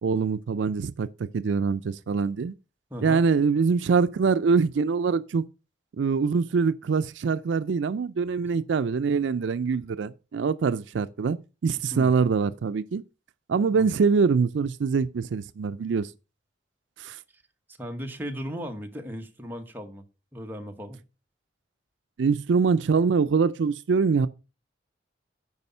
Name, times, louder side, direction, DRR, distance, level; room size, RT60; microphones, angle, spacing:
voice 1, 0.0-2.5 3.0-5.4 6.0-13.0 13.5-16.1 17.0-17.2 22.2-24.3, right 5 dB, 75° right, 0.4 m, -24 dB
voice 2, 2.9-3.2 11.9-12.1 13.7-13.9 17.8-20.0 20.3-21.0, equal, 10° right, 1.1 m, -36 dB
9.6 x 4.9 x 5.5 m
head